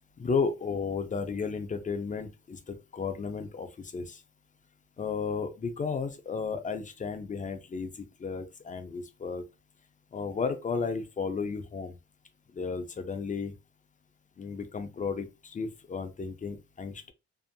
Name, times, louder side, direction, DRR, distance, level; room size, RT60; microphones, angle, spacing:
voice 1, 0.2-4.2 5.0-9.4 10.1-11.9 12.5-13.5 14.4-17.1, left 5 dB, 25° left, 0.5 m, -33 dB
2.7 x 2.4 x 2.2 m
cardioid pair, 90°, 30 cm